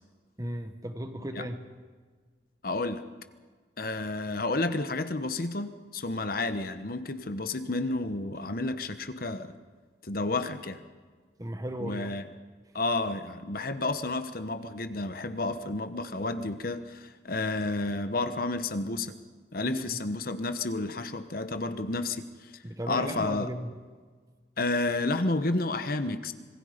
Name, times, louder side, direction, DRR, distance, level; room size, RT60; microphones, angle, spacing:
voice 1, 0.4-1.6 11.4-12.1 19.6-19.8 22.6-23.7, equal, 20° right, 7 dB, 1.4 m, -36 dB
voice 2, 2.6-3.0 3.8-9.5 10.0-10.8 11.8-12.2 12.7-19.1 19.5-22.2 22.9-23.5 24.6-26.3, left 2 dB, 55° left, 10 dB, 1.2 m, -31 dB
26.0 x 21.0 x 5.2 m, 1.5 s
head